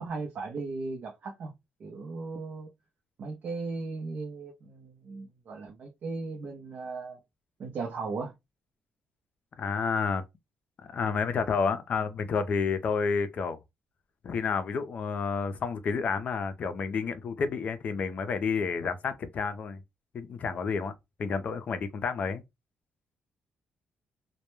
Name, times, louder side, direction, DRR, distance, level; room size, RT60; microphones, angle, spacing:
voice 1, 0.0-1.5 1.8-2.7 3.2-7.2 7.6-8.3, right 4 dB, 50° right, 0.6 m, -37 dB
voice 2, 9.6-10.2 10.9-13.6 14.2-19.8 20.1-20.9 21.2-22.4, left 5 dB, 45° left, 0.4 m, -30 dB
2.1 x 2.1 x 3.0 m
cardioid pair, 145°, 3 cm